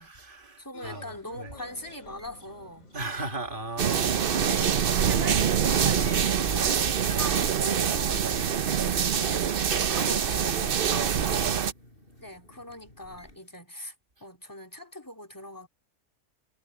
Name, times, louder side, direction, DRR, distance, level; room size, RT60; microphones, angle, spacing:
voice 1, 0.0-1.0 1.3-1.5 2.9-4.1 10.9-11.5, right 2 dB, 30° right, 2.2 m, -36 dB
voice 2, 0.6-2.9 3.9-4.1 4.4-10.9 12.2-13.9 14.2-15.7, left 1 dB, 10° left, 2.5 m, -41 dB
sound 1, 0.7-6.2, left 6 dB, 60° left, 3.5 m, -49 dB
sound 2, 0.8-13.6, left 1 dB, 35° left, 7.6 m, -56 dB
sound 3, 3.8-11.7, right 8 dB, 50° right, 0.7 m, -25 dB
omnidirectional pair, 1.7 m